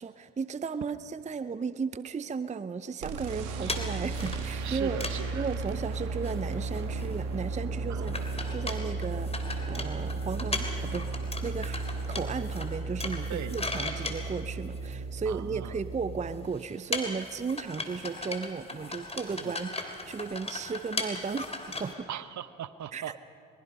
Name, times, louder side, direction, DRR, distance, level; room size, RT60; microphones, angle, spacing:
voice 1, 0.0-5.0 5.3-9.3 9.7-11.1 11.4-22.1 22.9-23.2, right 5 dB, 20° right, 14 dB, 0.6 m, -35 dB
sound 1, 3.0-5.3 5.6-5.7 5.9-6.0 6.2-7.3 7.6-7.7 8.0-15.2 16.0-16.1 16.3-21.9, left 2 dB, 15° left, 3.2 m, -38 dB
sound 2, 3.0-16.3, right 3 dB, 80° right, 2.0 m, -35 dB
voice 2, 4.6-5.5 7.9-8.2 13.3-13.6 15.3-15.8 19.4-19.6 22.1-23.2, right 10 dB, 50° right, 14 dB, 1.0 m, -39 dB
22.5 x 22.0 x 5.5 m, 2.5 s
hypercardioid pair, 60°, 37 cm